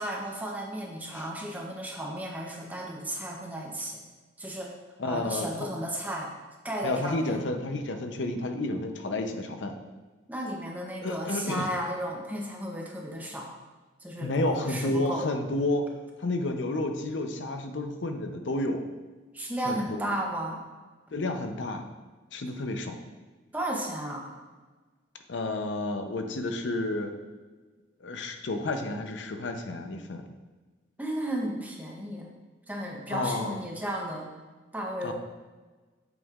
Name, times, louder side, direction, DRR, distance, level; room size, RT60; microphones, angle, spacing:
voice 1, 0.0-4.0 4.4-4.7 5.1-6.3 6.6-7.4 10.3-13.5 14.0-15.3 19.3-20.6 23.5-24.3 31.0-32.4 32.7-34.3 34.7-35.1, right 1 dB, 10° right, -1 dB, 0.7 m, -34 dB
voice 2, 5.0-5.7 6.8-9.8 11.0-11.7 14.2-15.9 16.2-18.9 19.6-20.0 21.1-21.9 22.3-23.0 25.3-27.1 28.0-30.2 33.1-33.6 35.0-35.1, left 2 dB, 85° left, 6 dB, 0.6 m, -31 dB
8.0 x 5.3 x 2.4 m, 1.3 s
head